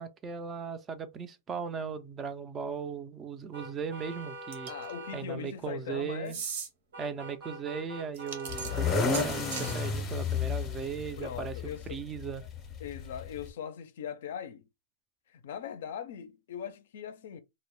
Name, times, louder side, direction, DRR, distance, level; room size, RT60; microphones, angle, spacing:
voice 1, 0.0-4.7 5.1-6.4 7.0-11.6 11.9-12.4, right 6 dB, 20° right, 0.3 m, -37 dB
sound 1, 3.5-5.2 6.9-9.9, right 2 dB, 80° right, 1.1 m, -44 dB
sound 2, 4.5-4.9 6.3-6.7 8.1-9.8, right 6 dB, 60° right, 0.8 m, -38 dB
voice 2, 4.7-6.3 11.2-12.0 12.8-14.7 15.3-17.4, left 8 dB, 65° left, 0.4 m, -40 dB
sound 3, 8.5-13.5, left 5 dB, 25° left, 0.6 m, -32 dB
2.1 x 2.0 x 3.0 m
hypercardioid pair, 135°, 0 cm